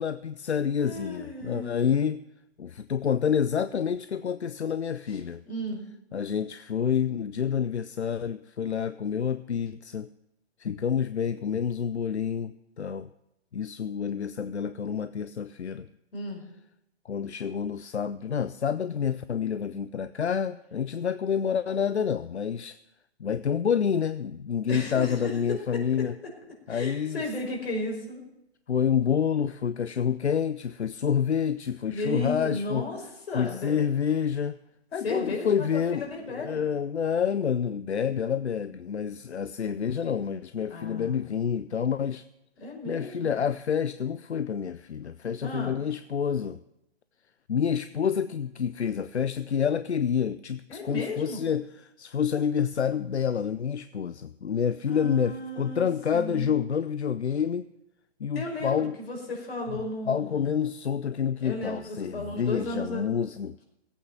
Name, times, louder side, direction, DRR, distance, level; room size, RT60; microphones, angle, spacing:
voice 1, 0.0-2.2 2.6-5.4 6.1-10.1 10.6-13.1 13.5-15.9 17.1-22.8 23.2-26.1 26.7-27.2 28.7-32.9 33.3-34.6 34.9-42.2 42.9-46.6 47.5-57.7 58.2-58.9 59.7-59.8 60.1-63.5, left 7 dB, 90° left, 13 dB, 0.6 m, -28 dB
voice 2, 0.8-1.7 5.1-5.2 5.5-5.8 16.1-16.4 24.7-25.4 26.7-28.2 31.9-33.7 35.0-35.7 35.9-36.6 40.7-41.2 42.6-43.4 45.4-45.8 50.7-51.4 54.9-55.9 56.1-56.6 58.3-60.6 61.4-63.0, left 1 dB, 65° left, -1 dB, 5.3 m, -34 dB
17.0 x 8.5 x 5.7 m, 0.86 s
figure-of-eight pair, 130°, 33 cm